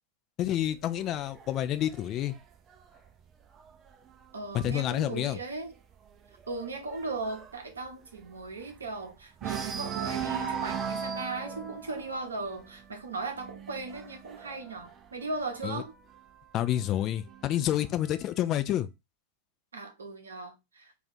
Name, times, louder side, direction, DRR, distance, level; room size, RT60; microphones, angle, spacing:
voice 1, 0.4-2.3 4.5-5.4 15.6-15.8 16.5-18.9, left 12 dB, 35° left, 0.3 m, -29 dB
sound 1, 0.6-4.2 4.6-5.0 5.2-5.3 5.7-9.0 9.4-15.9 16.8-17.8, right 7 dB, 25° right, 0.5 m, -39 dB
voice 2, 4.3-5.7 6.5-15.9 19.7-20.9, right 3 dB, 70° right, 0.7 m, -37 dB
2.5 x 2.5 x 4.0 m
figure-of-eight pair, 90°, 0 cm